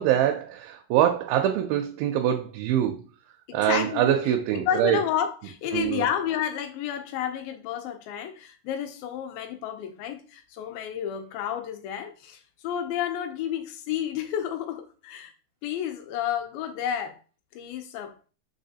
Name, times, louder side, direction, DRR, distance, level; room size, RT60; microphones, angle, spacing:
voice 1, 0.0-3.0 3.5-5.0 5.7-6.0, right 11 dB, 90° right, 2.4 m, -24 dB
voice 2, 3.5-15.3 15.6-17.2 17.6-18.2, left 9 dB, 85° left, 2.4 m, -31 dB
5.8 x 3.3 x 2.7 m
omnidirectional pair, 4.1 m